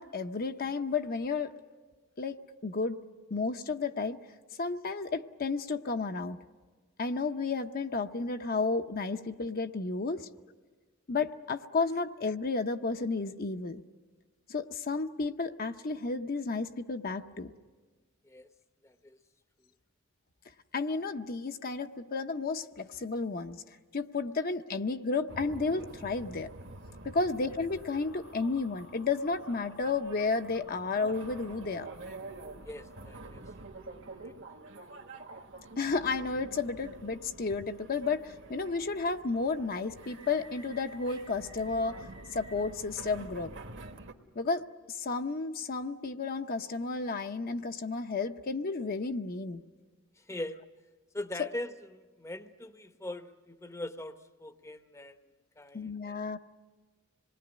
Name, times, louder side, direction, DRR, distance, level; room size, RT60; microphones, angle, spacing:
voice 1, 0.0-1.5 2.2-3.0 3.3-4.2 4.6-6.4 7.0-10.3 11.1-13.8 14.5-17.5 20.7-23.6 23.9-26.5 27.0-31.9 35.8-43.5 44.4-49.6 51.4-51.5 55.7-56.4, left 4 dB, 50° left, 6 dB, 0.8 m, -32 dB
voice 2, 18.8-19.2 32.6-33.4 34.1-34.3 50.2-50.6 51.1-56.2, left 1 dB, 15° left, 9 dB, 0.8 m, -42 dB
sound 1, 25.3-44.1, right 2 dB, 65° right, 1.6 m, -48 dB
sound 2, 27.7-33.8, left 3 dB, 85° left, 4.8 m, -57 dB
26.5 x 20.5 x 9.6 m, 1.4 s
head